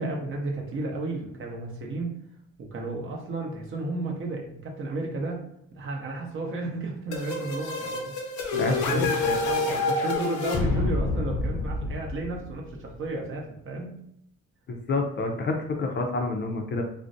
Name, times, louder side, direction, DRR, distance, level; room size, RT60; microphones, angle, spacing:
voice 1, 0.0-2.1 2.6-5.4 5.7-8.1 8.5-14.0, right 2 dB, 45° right, 0 dB, 0.6 m, -33 dB
sound 1, 7.1-12.8, left 3 dB, 80° left, 0.6 m, -28 dB
voice 2, 8.6-9.4 14.7-16.8, left 3 dB, 35° left, 3 dB, 0.4 m, -28 dB
2.4 x 2.0 x 2.5 m, 0.76 s
cardioid pair, 90°, 30 cm